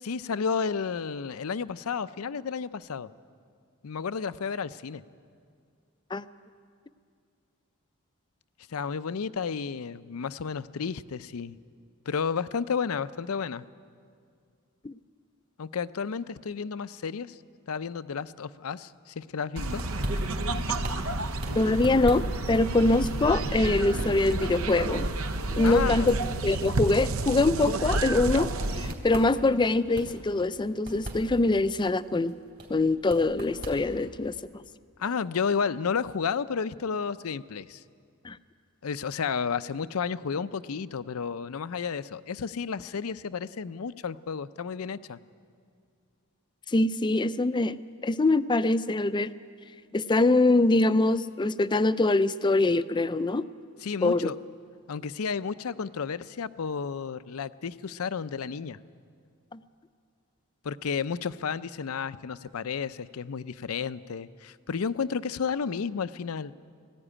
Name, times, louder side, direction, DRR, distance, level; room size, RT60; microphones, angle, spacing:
voice 1, 0.0-3.1 3.8-5.0 8.7-11.6 12.1-13.6 15.6-17.4 17.7-19.8 25.6-26.1 35.0-37.8 38.8-45.2 53.8-54.4 54.9-58.8 60.6-66.5, left 6 dB, 80° left, 15 dB, 0.5 m, -32 dB
sound 1, 19.4-34.4, equal, 50° right, 3.6 m, -41 dB
sound 2, 19.6-28.9, right 2 dB, 70° right, 0.9 m, -30 dB
voice 2, 21.6-25.1 25.6-26.1 26.4-32.3 32.7-34.6 38.2-38.4 46.7-47.8 48.0-49.3 49.9-53.4 54.0-54.3 59.5-59.6, left 2 dB, 20° left, 13 dB, 0.4 m, -24 dB
19.5 x 15.0 x 9.9 m, 2.3 s
head